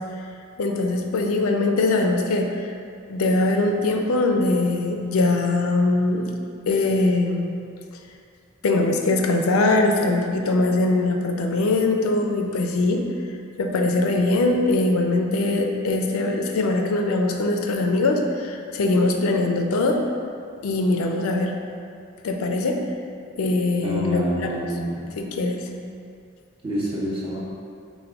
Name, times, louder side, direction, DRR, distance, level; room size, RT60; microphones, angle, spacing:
voice 1, 0.6-2.6 3.1-6.3 6.7-7.5 8.6-13.0 13.6-20.0 20.6-21.5 22.2-22.8 23.4-24.7 25.2-25.7, left 2 dB, 85° left, 3 dB, 0.4 m, -22 dB
voice 2, 23.8-25.0 26.6-27.4, equal, 25° right, -7 dB, 0.6 m, -27 dB
4.5 x 2.2 x 3.4 m, 2.4 s
head